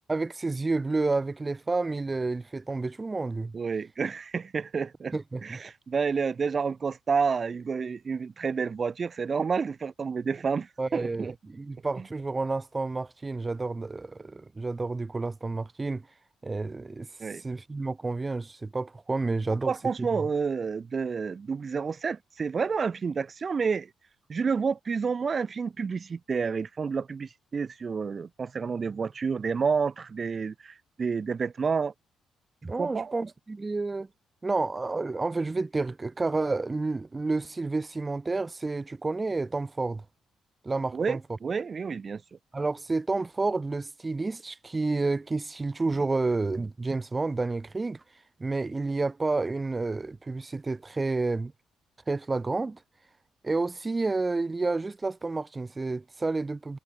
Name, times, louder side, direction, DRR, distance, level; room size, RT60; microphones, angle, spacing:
voice 1, 0.1-3.5 5.1-5.6 10.8-16.0 16.4-17.1 17.3-19.7 20.0-20.1 32.6-34.1 34.4-40.0 40.6-41.2 42.5-48.0 48.4-51.5 52.1-52.8 53.4-56.8, right 3 dB, 25° right, 1.5 m, -30 dB
voice 2, 3.5-5.1 5.4-11.3 17.2-17.4 19.6-23.9 24.3-31.9 32.8-33.1 40.9-42.2, right 5 dB, 40° right, 1.9 m, -29 dB
cardioid pair, 90°, 0 cm